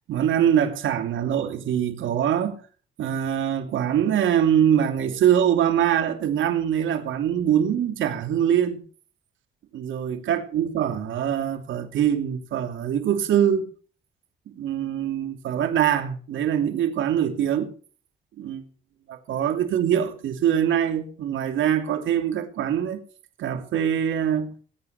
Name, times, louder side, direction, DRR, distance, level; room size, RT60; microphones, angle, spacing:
voice 1, 0.1-2.6 3.0-8.8 9.7-13.7 14.5-17.7 18.4-18.6 19.1-23.0 23.4-24.5, right 9 dB, 75° right, 2.8 m, -23 dB
20.0 x 8.7 x 5.9 m
cardioid pair, 90°, 20 cm